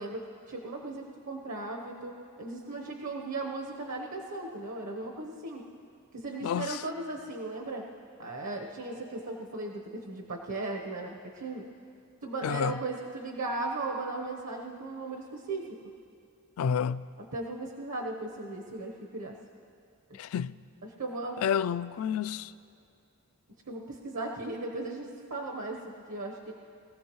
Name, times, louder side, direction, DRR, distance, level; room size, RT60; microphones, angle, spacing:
voice 1, 0.0-5.6 6.1-7.8 8.2-11.6 12.2-15.8 17.3-19.4 20.1-20.2 21.0-21.4 23.7-26.5, right 2 dB, 75° right, 1.0 m, -37 dB
voice 2, 6.4-6.9 12.4-12.8 16.6-17.1 20.1-20.5 21.4-22.5, left 7 dB, 70° left, 0.3 m, -30 dB
21.5 x 15.0 x 3.1 m
head